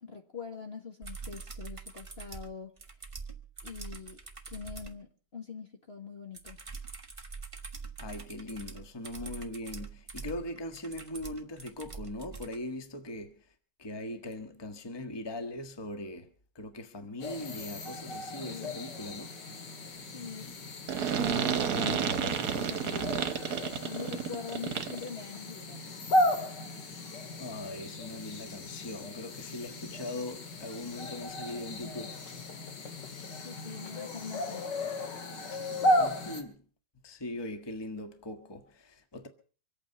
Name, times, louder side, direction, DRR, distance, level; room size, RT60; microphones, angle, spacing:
voice 1, 0.0-2.7 3.6-4.2 4.5-6.6 18.4-18.7 20.1-20.5 21.2-23.2 23.8-25.8 33.4-34.7, left 5 dB, 35° left, 1.5 m, -43 dB
sound 1, 1.0-5.0 6.3-12.6 14.3-14.4, right 4 dB, 20° right, 1.3 m, -44 dB
voice 2, 8.0-13.5 13.8-19.3 27.4-32.2 36.0-36.6 37.0-39.3, left 1 dB, 15° left, 1.3 m, -40 dB
sound 2, 17.2-36.4, left 1 dB, 60° left, 2.4 m, -35 dB
sound 3, 20.9-25.1, right 7 dB, 55° right, 1.5 m, -30 dB
25.0 x 8.9 x 5.5 m
omnidirectional pair, 2.2 m